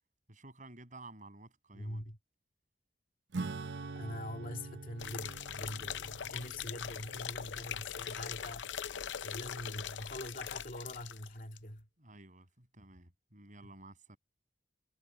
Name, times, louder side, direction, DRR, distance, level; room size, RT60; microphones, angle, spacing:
voice 1, 0.3-2.0 12.0-14.2, right 2 dB, 45° right, 7.9 m, -53 dB
voice 2, 1.7-2.2 3.9-8.7 9.2-11.9, left 1 dB, 50° left, 2.2 m, -44 dB
Acoustic guitar / Strum, 3.3-9.3, right 3 dB, 75° right, 0.7 m, -45 dB
sound 1, 5.0-11.3 11.6-11.7, left 8 dB, 90° left, 0.6 m, -41 dB
head